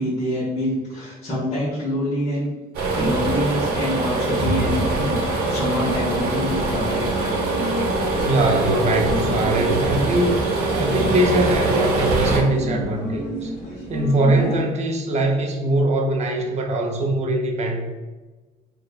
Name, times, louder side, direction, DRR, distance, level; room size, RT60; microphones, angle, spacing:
voice 1, 0.0-2.5 2.9-7.1 7.5-8.1, equal, 40° left, -10 dB, 1.1 m, -26 dB
sound 1, 2.7-12.4, right 2 dB, 75° right, 0.9 m, -23 dB
sound 2, 3.6-14.6, equal, 70° left, 1.2 m, -32 dB
voice 2, 8.2-10.4 10.7-13.5 13.9-17.8, right 1 dB, 40° right, 2 dB, 0.5 m, -22 dB
3.1 x 2.2 x 2.4 m, 1.2 s
cardioid pair, 110°, 17 cm